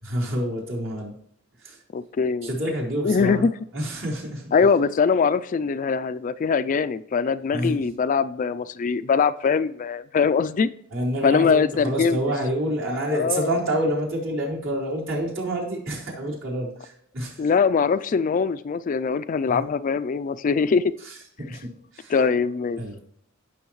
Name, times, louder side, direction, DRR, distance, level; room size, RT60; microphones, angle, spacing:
voice 1, 0.0-1.1 1.6-1.8 2.4-3.5 3.7-4.5 7.5-7.9 10.9-17.5 19.4-19.7 21.0-22.1 22.8-23.0, right 1 dB, 70° right, -4 dB, 4.0 m, -28 dB
voice 2, 1.9-2.5 3.0-3.5 4.5-10.7 11.2-12.2 13.1-13.5 17.4-20.9 22.1-22.8, left 5 dB, 40° left, 13 dB, 0.3 m, -22 dB
15.5 x 6.3 x 3.1 m, 0.69 s
head